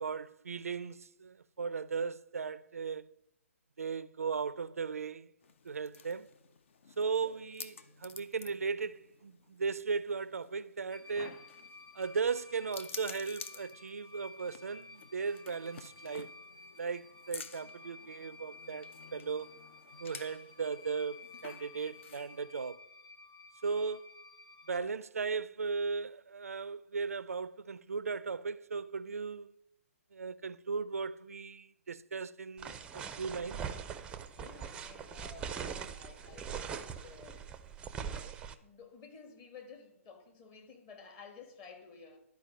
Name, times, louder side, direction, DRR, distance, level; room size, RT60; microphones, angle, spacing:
voice 1, 0.0-3.1 3.8-5.3 5.6-6.3 7.0-7.7 8.0-11.4 11.9-16.3 16.8-19.5 20.0-21.2 21.4-22.8 23.6-24.1 24.7-29.5 30.1-33.6, right 5 dB, 80° right, 0.3 m, -37 dB
sound 1, 5.4-22.4, left 5 dB, 60° left, 0.6 m, -52 dB
sound 2, 10.9-24.8, left 3 dB, 15° left, 0.7 m, -54 dB
sound 3, 32.6-38.5, right 7 dB, 10° right, 0.4 m, -42 dB
voice 2, 34.4-37.5 38.1-38.3 38.6-42.2, left 5 dB, 30° left, 1.5 m, -53 dB
11.5 x 4.6 x 5.2 m
figure-of-eight pair, 130°, 8 cm